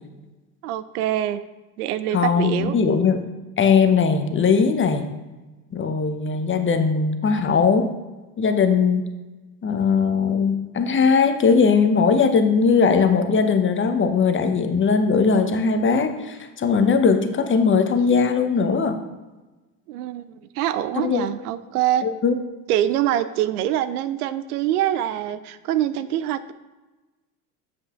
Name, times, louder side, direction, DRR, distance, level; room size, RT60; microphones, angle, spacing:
voice 1, 0.6-1.4 1.8-2.7 13.0-13.1 19.9-22.1 22.7-26.5, right 12 dB, 75° right, 13 dB, 0.5 m, -24 dB
voice 2, 2.1-3.2 3.6-5.0 5.7-7.9 8.4-9.1 9.6-19.0 21.0-21.3 22.0-22.4, left 5 dB, 25° left, 7 dB, 0.8 m, -19 dB
7.9 x 7.6 x 2.5 m, 1.2 s
hypercardioid pair, 75°, 46 cm